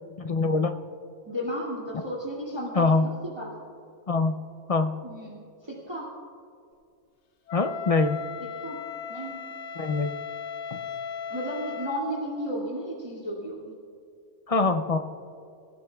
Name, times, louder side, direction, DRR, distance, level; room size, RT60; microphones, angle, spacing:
voice 1, 0.2-0.8 2.8-3.1 4.1-4.4 4.7-4.9 7.5-8.2 9.8-10.1 10.7-10.8 14.5-15.0, left 3 dB, 40° left, 7 dB, 0.5 m, -23 dB
voice 2, 1.2-3.5 5.0-6.1 8.4-8.8 9.1-9.5 11.3-13.7, equal, 20° right, -3 dB, 2.3 m, -34 dB
Wind instrument woodwind instrument, 7.5-12.1, left 6 dB, 70° left, 1.1 m, -36 dB
25.0 x 15.5 x 2.3 m, 2.4 s
omnidirectional pair, 1.2 m